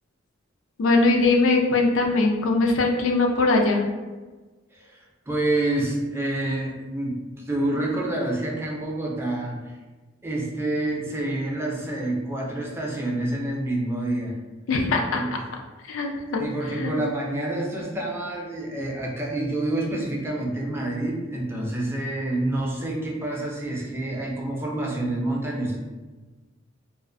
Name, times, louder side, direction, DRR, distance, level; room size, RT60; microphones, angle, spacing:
voice 1, 0.8-3.8 14.7-15.2 15.9-16.4 16.7-17.0, left 3 dB, 85° left, 1 dB, 0.4 m, -21 dB
voice 2, 4.7-9.6 10.2-14.4 15.2-15.3 16.4-25.8, right 1 dB, 10° right, -2 dB, 0.4 m, -28 dB
2.4 x 2.1 x 2.5 m, 1.3 s
head